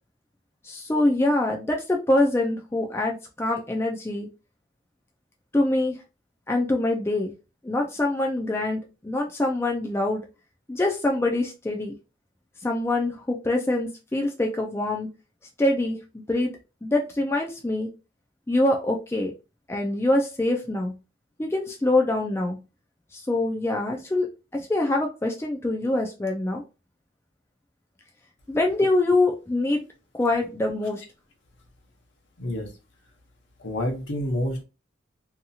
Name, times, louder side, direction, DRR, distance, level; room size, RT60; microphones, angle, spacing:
voice 1, 0.6-4.3 5.5-6.0 6.5-7.3 7.6-8.8 9.0-10.2 10.7-11.9 12.6-15.1 15.6-16.5 16.8-17.9 18.5-19.3 19.7-20.9 21.4-22.6 23.1-24.3 24.5-26.6 28.5-29.8 30.2-31.0, left 2 dB, 15° left, 1 dB, 0.3 m, -24 dB
voice 2, 32.4-32.7 33.6-34.6, left 1 dB, 70° left, 2 dB, 0.9 m, -28 dB
2.8 x 2.3 x 2.7 m, 0.29 s
head